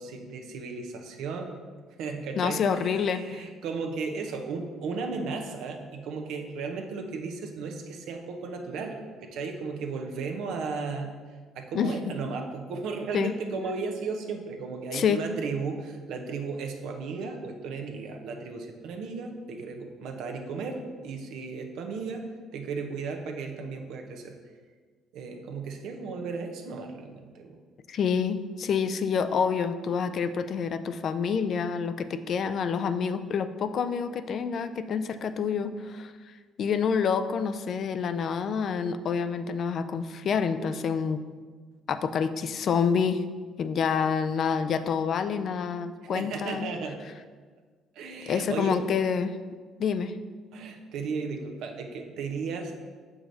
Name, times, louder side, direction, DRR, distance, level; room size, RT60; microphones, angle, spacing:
voice 1, 0.0-1.6 2.0-11.1 11.5-24.3 25.1-27.6 46.0-47.0 47.9-48.8 50.5-52.8, right 4 dB, 75° right, 4 dB, 0.8 m, -35 dB
voice 2, 2.4-3.4 11.7-11.9 13.1-13.3 14.9-15.2 27.9-36.1 36.6-41.2 41.9-43.2 43.6-46.7 48.3-49.3 49.8-50.1, left 6 dB, 60° left, 11 dB, 0.4 m, -27 dB
6.4 x 4.9 x 3.9 m, 1.5 s
supercardioid pair, 65°, 0 cm